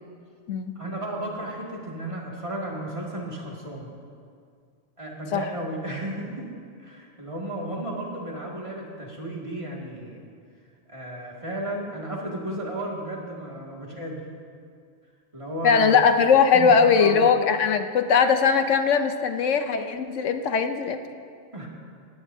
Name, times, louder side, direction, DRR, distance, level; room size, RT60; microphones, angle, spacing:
voice 1, 0.8-3.9 5.0-6.5 6.8-10.2 10.9-14.2 15.3-16.1 16.5-17.3 21.5-21.7, right 1 dB, 25° right, -3 dB, 2.2 m, -34 dB
voice 2, 15.6-21.0, left 6 dB, 80° left, 7 dB, 1.1 m, -20 dB
20.0 x 16.0 x 2.7 m, 2.2 s
omnidirectional pair, 1.3 m